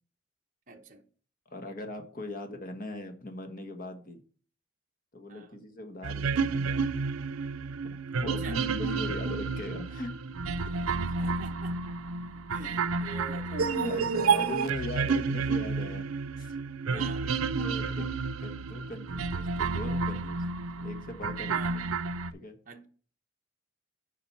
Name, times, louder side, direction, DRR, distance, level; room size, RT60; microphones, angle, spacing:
voice 1, 0.7-1.0 5.3-5.6 8.1-8.6 11.1-11.7 12.5-14.0 16.9-17.3 21.5-22.0 22.7-22.9, right 4 dB, 40° right, 0.9 m, -45 dB
voice 2, 1.5-4.2 5.1-6.9 8.1-10.1 10.7-10.8 13.1-13.2 13.5-16.1 16.4-16.6 16.9-17.3 17.6-18.1 18.4-20.4 20.8-21.6 22.3-22.6, left 1 dB, 45° left, 1.3 m, -39 dB
sound 1, 6.0-22.3, right 4 dB, 85° right, 0.5 m, -30 dB
7.2 x 5.0 x 5.7 m
head